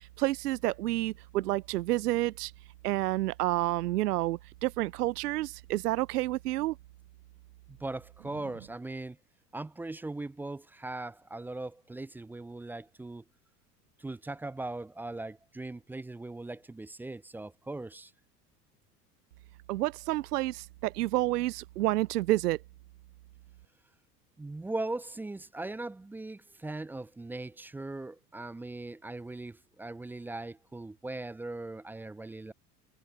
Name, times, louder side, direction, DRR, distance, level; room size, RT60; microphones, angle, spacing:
voice 1, 0.2-2.5 2.8-6.7 19.7-22.6, right 16 dB, 65° right, 0.8 m, -29 dB
voice 2, 7.7-9.2 9.5-13.2 14.0-18.1 24.4-32.5, right 2 dB, 5° right, 0.4 m, -39 dB
figure-of-eight pair, 75°, 50 cm